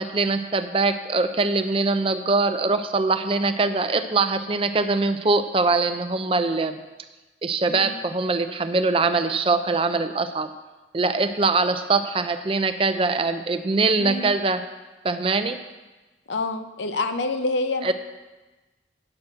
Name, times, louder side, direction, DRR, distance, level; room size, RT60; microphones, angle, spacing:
voice 1, 0.0-6.8 7.4-10.5 10.9-14.6 15.0-15.6 17.8-17.9, right 3 dB, 30° right, 10 dB, 0.5 m, -23 dB
voice 2, 14.0-14.3 16.3-17.9, left 3 dB, 85° left, 8 dB, 0.8 m, -27 dB
8.6 x 6.0 x 7.8 m, 1.2 s
head